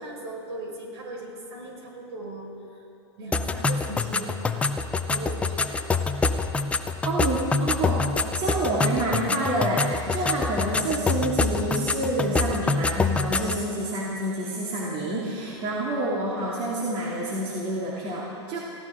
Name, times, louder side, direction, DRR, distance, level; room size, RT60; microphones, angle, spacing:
voice 1, 0.0-2.8 3.2-4.8 5.1-5.9 6.2-6.3 15.1-15.3, right 2 dB, 60° right, -1 dB, 5.1 m, -39 dB
sound 1, 3.3-13.6, left 4 dB, 10° left, 0.5 m, -26 dB
voice 2, 7.0-8.0 8.3-18.6, right 1 dB, 35° right, -5 dB, 2.5 m, -28 dB
23.5 x 16.0 x 3.7 m, 2.7 s
hypercardioid pair, 135°, 15 cm